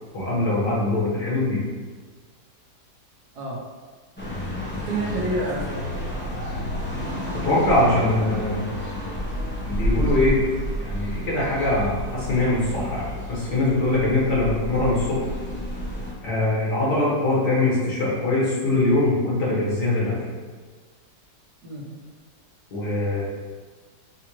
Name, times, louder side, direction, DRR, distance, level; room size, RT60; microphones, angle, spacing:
voice 1, 0.1-1.6 7.4-8.6 9.6-10.4 10.8-15.3 16.2-20.2 22.7-23.2, left 2 dB, 70° left, -7 dB, 2.0 m, -22 dB
sound 1, 4.2-16.1, equal, 15° left, 0.4 m, -30 dB
voice 2, 4.7-5.9 21.6-21.9, right 1 dB, 65° right, -5 dB, 1.6 m, -29 dB
6.2 x 2.5 x 3.0 m, 1.5 s
omnidirectional pair, 1.9 m